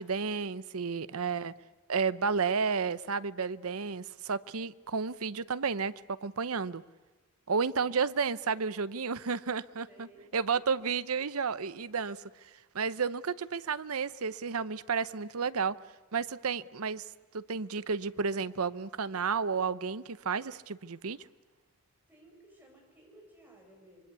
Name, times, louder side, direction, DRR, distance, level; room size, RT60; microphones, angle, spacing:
voice 1, 0.0-1.5 1.9-6.8 7.5-10.1 10.3-15.7 16.1-17.0 17.3-21.2, right 5 dB, 80° right, 16 dB, 0.8 m, -32 dB
voice 2, 9.9-10.8 22.1-24.0, right 1 dB, 10° right, -1 dB, 7.9 m, -58 dB
26.0 x 23.5 x 8.3 m, 1.2 s
head